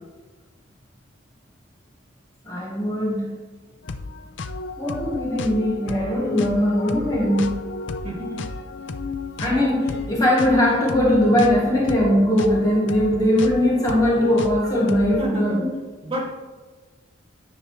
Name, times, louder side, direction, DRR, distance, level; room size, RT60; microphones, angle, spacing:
voice 1, 2.4-3.4 4.8-7.6 9.4-15.7, left 1 dB, 20° left, -4 dB, 1.4 m, -20 dB
sound 1, 3.8-15.2, left 3 dB, 60° left, 0.5 m, -33 dB
voice 2, 8.0-8.5 15.2-15.6 16.0-16.4, equal, 25° right, -5 dB, 2.3 m, -30 dB
10.0 x 6.5 x 3.1 m, 1.3 s
head